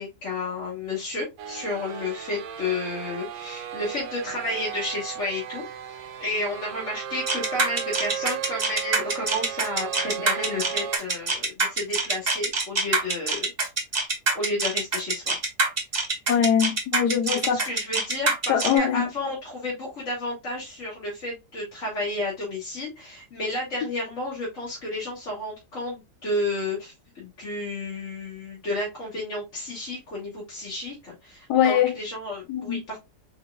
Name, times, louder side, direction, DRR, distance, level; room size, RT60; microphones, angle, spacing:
voice 1, 0.0-13.5 14.3-15.4 17.3-33.0, left 2 dB, 50° left, 2.0 m, -32 dB
sound 1, 1.4-11.0, right 9 dB, 70° right, 0.7 m, -36 dB
sound 2, 7.3-18.8, right 3 dB, 30° right, 1.0 m, -24 dB
voice 2, 16.3-17.6 18.5-19.1 31.5-31.9 32.5-32.8, left 9 dB, 85° left, 1.3 m, -22 dB
4.1 x 4.1 x 2.2 m
omnidirectional pair, 1.7 m